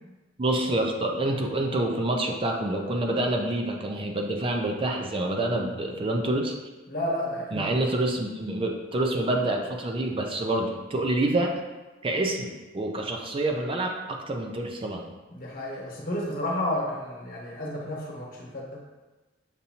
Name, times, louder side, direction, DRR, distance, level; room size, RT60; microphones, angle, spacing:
voice 1, 0.4-6.5 7.5-11.5 12.0-15.1, right 1 dB, 30° right, 2 dB, 0.4 m, -27 dB
voice 2, 6.9-7.7 15.3-18.8, left 1 dB, 50° left, -3 dB, 1.1 m, -31 dB
6.7 x 2.6 x 2.8 m, 1.2 s
head